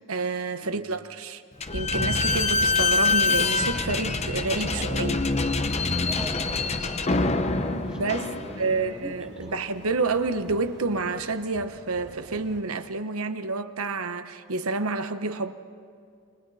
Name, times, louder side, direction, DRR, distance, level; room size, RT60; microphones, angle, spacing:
voice 1, 0.1-1.4 1.7-5.2 7.9-15.5, right 3 dB, 80° right, 1.1 m, -29 dB
voice 2, 0.6-0.9 4.7-4.9 6.0-9.5, equal, 5° right, 2.9 m, -43 dB
Slam / Squeak, 1.6-8.9, left 3 dB, 30° left, 0.8 m, -25 dB
sound 1, 3.0-12.6, right 1 dB, 50° right, 3.0 m, -47 dB
29.0 x 24.0 x 4.2 m
head